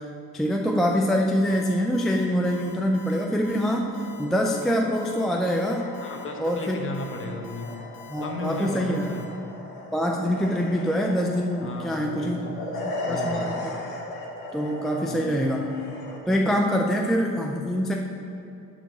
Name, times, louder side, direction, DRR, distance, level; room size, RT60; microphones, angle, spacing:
voice 1, 0.3-5.9 6.4-6.8 8.1-9.1 9.9-13.8 14.5-15.7 16.3-17.9, equal, ahead, 0 dB, 0.3 m, -25 dB
Alarm, 1.4-9.2, left 8 dB, 65° left, 1.2 m, -47 dB
sound 1, 3.8-16.2, left 1 dB, 80° left, 1.4 m, -37 dB
voice 2, 6.0-7.9 8.2-9.3 11.6-12.6 13.0-13.7 15.0-15.5, left 2 dB, 35° left, 2 dB, 0.9 m, -35 dB
6.2 x 4.8 x 6.6 m, 2.7 s
cardioid pair, 150°, 35 cm